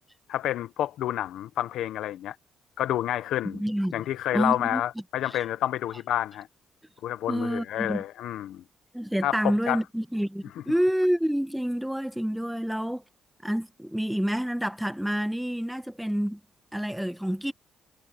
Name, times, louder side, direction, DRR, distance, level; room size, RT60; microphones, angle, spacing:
voice 1, 0.3-2.4 2.8-3.6 3.9-6.5 7.0-8.6 9.2-9.8, left 12 dB, 80° left, 0.7 m, -29 dB
voice 2, 3.4-4.0 4.3-4.8 5.3-5.4 7.3-8.0 8.9-13.0 13.4-16.4 16.7-17.5, equal, 5° right, 1.1 m, -28 dB
cardioid pair, 90°, 0 cm